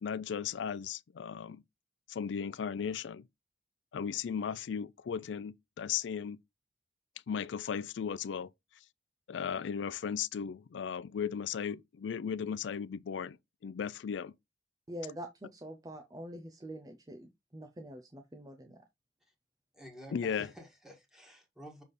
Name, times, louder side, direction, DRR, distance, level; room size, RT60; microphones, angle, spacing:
voice 1, 0.0-1.6 2.1-3.2 3.9-6.4 7.3-8.5 9.3-13.4 13.6-14.3 20.1-20.5, left 7 dB, 80° left, 0.4 m, -36 dB
voice 2, 14.9-18.8, right 1 dB, 20° right, 0.6 m, -45 dB
voice 3, 19.7-21.8, equal, 5° right, 1.6 m, -51 dB
6.6 x 3.4 x 4.1 m
head